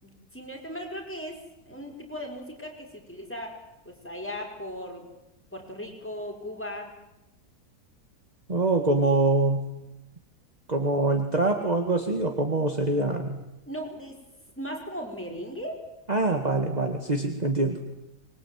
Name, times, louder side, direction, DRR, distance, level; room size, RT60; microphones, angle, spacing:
voice 1, 0.0-3.5 3.9-5.1 5.5-7.0 13.7-14.2 14.6-15.8, equal, 5° left, 2 dB, 5.5 m, -37 dB
voice 2, 8.5-9.7 10.7-13.4 16.1-17.8, right 2 dB, 25° right, 4 dB, 2.1 m, -24 dB
25.5 x 22.0 x 9.4 m, 0.95 s
omnidirectional pair, 1.6 m